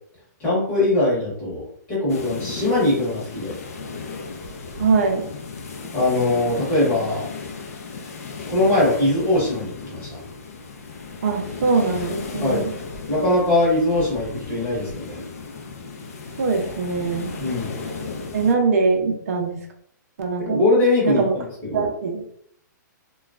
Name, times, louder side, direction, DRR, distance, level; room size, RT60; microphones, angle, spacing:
voice 1, 0.4-1.6 1.9-3.5 5.9-7.3 8.5-10.2 12.4-12.6 13.1-15.2 17.4-17.7 20.4-21.9, left 1 dB, 15° left, -7 dB, 1.0 m, -21 dB
sound 1, 2.1-18.5, left 4 dB, 50° left, 0.5 m, -35 dB
voice 2, 4.8-5.2 11.2-12.7 16.4-17.4 18.3-19.6 20.2-20.6 21.0-21.3 21.7-22.2, right 4 dB, 50° right, 2 dB, 0.6 m, -22 dB
3.0 x 2.3 x 2.4 m, 0.65 s
hypercardioid pair, 175°, 10 cm